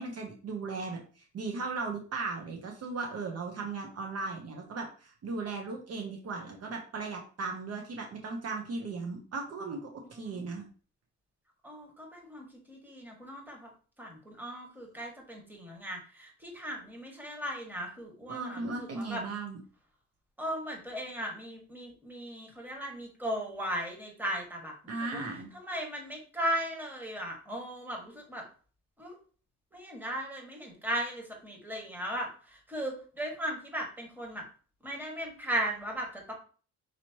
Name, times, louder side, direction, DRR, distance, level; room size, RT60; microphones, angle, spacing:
voice 1, 0.0-10.6 18.3-19.6 24.9-25.5, right 3 dB, 55° right, 2 dB, 1.0 m, -37 dB
voice 2, 11.6-13.7 14.0-19.2 20.4-25.2 25.5-28.5 29.0-29.1 29.7-32.3 32.7-34.4 34.8-36.3, right 1 dB, 5° right, 0 dB, 1.8 m, -37 dB
5.9 x 3.1 x 2.9 m, 0.40 s
cardioid pair, 90°, 30 cm